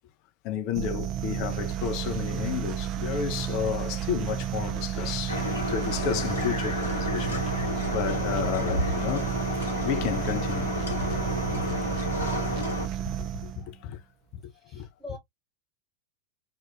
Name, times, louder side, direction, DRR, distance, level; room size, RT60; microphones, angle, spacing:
voice 1, 0.4-7.4 7.9-9.3 9.8-12.1 12.7-12.9 13.2-14.0 14.7-14.9, left 9 dB, 40° left, 0.5 m, -32 dB
sound 1, 0.7-13.7, right 10 dB, 35° right, 0.4 m, -31 dB
sound 2, 5.3-12.9, left 2 dB, 80° left, 1.2 m, -31 dB
voice 2, 14.4-15.2, left 2 dB, 5° left, 1.4 m, -45 dB
2.6 x 2.3 x 2.8 m
figure-of-eight pair, 90°, 0 cm